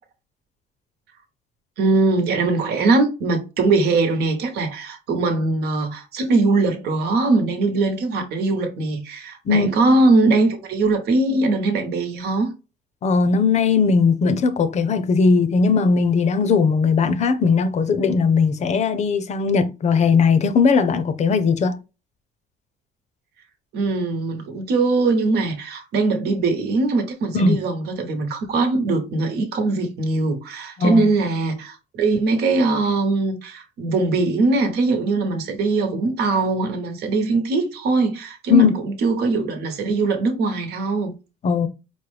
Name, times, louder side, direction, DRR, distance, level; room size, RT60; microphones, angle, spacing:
voice 1, 1.8-12.5 23.7-41.1, right 3 dB, 75° right, 1.1 m, -21 dB
voice 2, 13.0-21.8 27.3-27.6 30.8-31.0 38.5-38.7 41.4-41.7, left 5 dB, 40° left, 0.6 m, -18 dB
4.7 x 2.1 x 3.2 m
cardioid pair, 110°, 17 cm